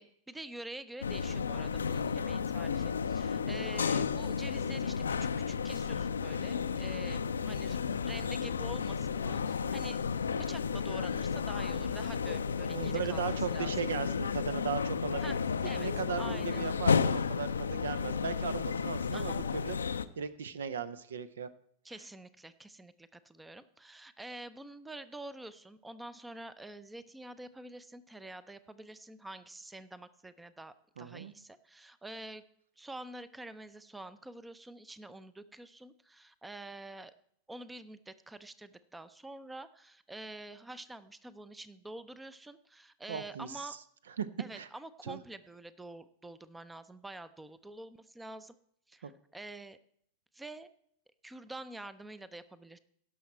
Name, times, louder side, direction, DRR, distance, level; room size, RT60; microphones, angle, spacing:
voice 1, 0.0-10.0 10.3-13.7 15.1-16.8 19.1-19.4 21.8-32.4 32.8-37.1 37.5-43.8 44.4-48.5 48.9-49.8 50.3-50.7 51.2-52.8, right 2 dB, 5° right, 15 dB, 0.5 m, -47 dB
sound 1, 1.0-20.0, left 6 dB, 70° left, 0.4 m, -32 dB
voice 2, 12.7-15.2 15.8-19.8 20.2-21.5 31.0-31.3 43.1-43.7 44.2-44.3 44.5-44.7 45.1-45.2 49.0-49.1, right 7 dB, 65° right, 16 dB, 0.5 m, -37 dB
17.0 x 6.3 x 4.4 m, 0.68 s
figure-of-eight pair, 90°, 0 cm